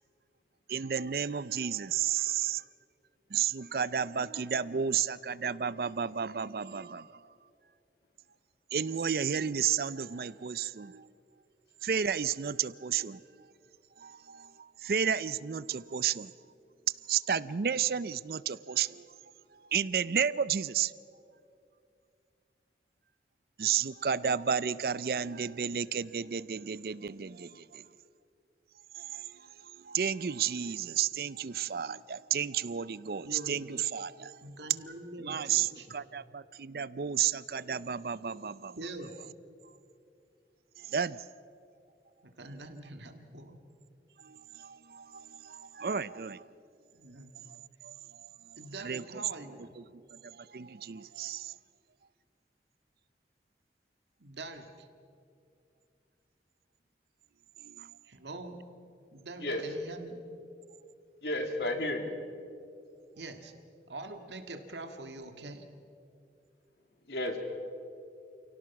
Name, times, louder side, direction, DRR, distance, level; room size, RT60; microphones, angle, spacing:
voice 1, 0.7-2.6 3.3-7.2 8.7-11.1 11.8-13.2 14.0-16.3 17.1-19.1 19.7-20.9 23.6-27.8 29.0-34.4 35.3-38.8 40.8-41.2 44.2-46.4 47.8-47.9 48.2-48.3 48.8-49.2 49.9-51.5 57.6-57.9, right 7 dB, 55° right, 0.4 m, -32 dB
voice 2, 33.2-33.7 34.4-36.0 38.7-39.2 42.2-43.6 46.9-47.4 48.6-49.8 54.2-54.9 58.0-58.6 59.1-60.2 63.2-63.5 63.9-65.7, right 2 dB, 85° right, 1.9 m, -44 dB
voice 3, 61.2-62.2 67.1-67.4, left 1 dB, 75° left, 2.6 m, -32 dB
29.0 x 17.5 x 5.9 m
head